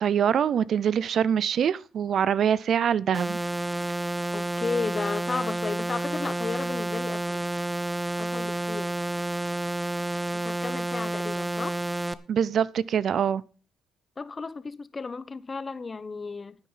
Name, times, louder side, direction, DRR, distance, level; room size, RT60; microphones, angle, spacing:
voice 1, 0.0-3.4 12.3-13.4, right 8 dB, 60° right, 0.5 m, -24 dB
sound 1, 3.1-12.1, right 1 dB, 10° right, 0.7 m, -30 dB
voice 2, 4.3-7.4 8.2-8.9 10.3-11.8 14.2-16.6, left 4 dB, 30° left, 0.9 m, -33 dB
10.0 x 9.3 x 5.6 m
cardioid pair, 90°, 0 cm